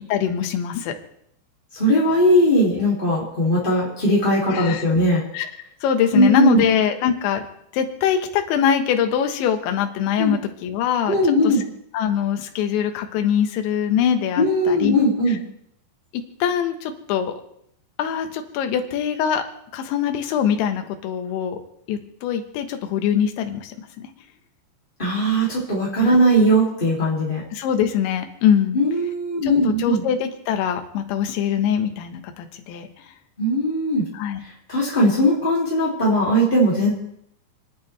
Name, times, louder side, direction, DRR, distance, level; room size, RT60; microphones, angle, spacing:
voice 1, 0.1-0.9 4.5-4.8 5.3-5.5 5.8-7.4 7.7-11.5 11.9-15.0 16.1-17.4 18.0-19.4 19.7-21.6 21.9-24.1 26.0-26.1 27.5-28.8 29.4-32.9 34.1-34.4, left 8 dB, 80° left, 6 dB, 3.5 m, -23 dB
voice 2, 1.7-5.2 6.1-6.6 10.2-10.3 11.1-11.6 14.4-15.4 25.0-27.4 28.7-30.0 33.4-34.1 34.4-37.0, equal, 20° left, -6 dB, 1.5 m, -19 dB
29.5 x 10.5 x 3.3 m, 0.72 s
omnidirectional pair, 5.4 m